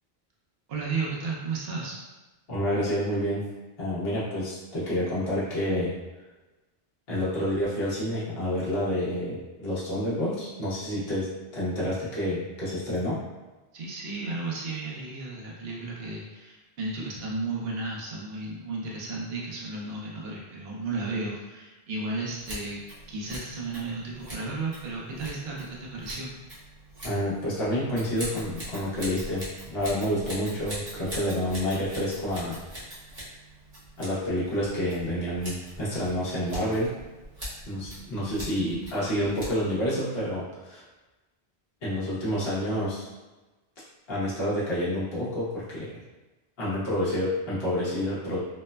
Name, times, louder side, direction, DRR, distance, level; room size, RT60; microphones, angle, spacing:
voice 1, 0.7-1.9 13.7-22.8 23.1-26.3, right 3 dB, 75° right, -4 dB, 0.9 m, -33 dB
voice 2, 2.5-3.5 3.8-5.9 7.1-13.2 27.0-29.4 29.7-32.6 34.0-36.9 37.7-40.8 41.8-43.1 44.1-45.9 46.6-48.4, equal, 75° left, -8 dB, 1.0 m, -28 dB
Scissors, 22.4-39.9, equal, 35° right, 1.0 m, -42 dB
3.1 x 2.1 x 2.2 m, 1.2 s
omnidirectional pair, 1.0 m